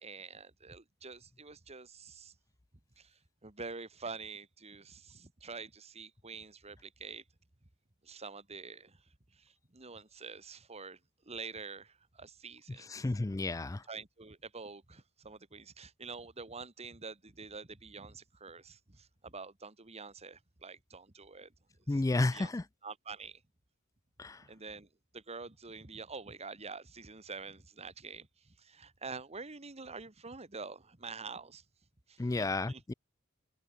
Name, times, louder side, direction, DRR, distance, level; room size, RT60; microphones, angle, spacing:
voice 1, 0.0-2.3 3.0-7.2 8.0-9.0 9.4-11.0 11.3-12.9 13.9-21.5 21.9-22.0 22.3-22.5 22.8-23.4 24.4-24.9 25.1-28.3 28.6-31.6 32.1-32.8, right 4 dB, 30° right, 1.8 m, -47 dB
voice 2, 12.9-13.8 21.9-22.6 24.2-24.4 32.2-32.9, left 2 dB, 15° left, 0.4 m, -32 dB
head